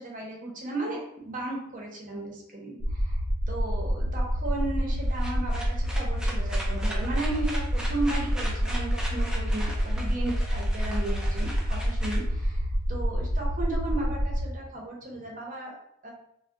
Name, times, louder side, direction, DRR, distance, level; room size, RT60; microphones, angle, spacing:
voice 1, 0.0-15.7 16.0-16.1, right 2 dB, 40° right, -1 dB, 0.7 m, -35 dB
sound 1, 2.8-14.4, equal, 80° right, 0.6 m, -28 dB
sound 2, 4.9-13.0, equal, 5° right, 0.4 m, -40 dB
2.3 x 2.1 x 3.6 m, 0.75 s
head